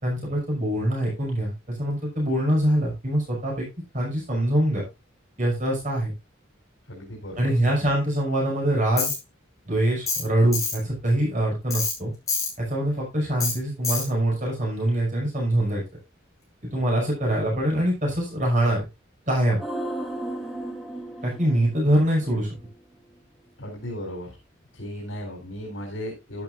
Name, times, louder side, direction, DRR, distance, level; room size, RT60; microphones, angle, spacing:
voice 1, 0.0-3.7 3.9-4.9 5.4-6.1 7.4-9.1 9.7-12.1 12.6-15.8 16.6-18.9 19.3-19.6 21.2-22.5, right 1 dB, 40° right, -2 dB, 6.1 m, -24 dB
voice 2, 6.9-7.7 23.6-24.4 24.7-26.4, equal, 75° left, -1 dB, 4.0 m, -36 dB
Tools, 9.0-9.2 10.1-10.3 10.5-10.8 11.7-11.9 12.3-12.5 13.4-13.5 13.8-14.1, left 4 dB, 15° left, 7.0 m, -26 dB
sound 1, 19.6-22.9 23.1-23.2, right 1 dB, ahead, 2.5 m, -35 dB
12.0 x 11.5 x 2.6 m, 0.25 s
head